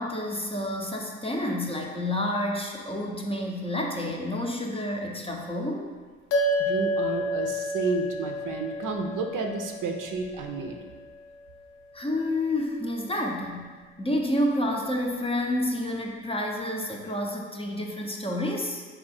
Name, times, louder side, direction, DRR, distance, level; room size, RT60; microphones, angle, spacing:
voice 1, 0.0-5.9 11.9-13.7 14.0-18.9, left 1 dB, 15° left, 0 dB, 0.6 m, -29 dB
sound 1, 6.3-11.0, equal, 80° left, 0.7 m, -30 dB
voice 2, 6.6-10.8, right 4 dB, 65° right, 3 dB, 0.6 m, -31 dB
3.7 x 2.7 x 4.2 m, 1.5 s
supercardioid pair, 60°, 35 cm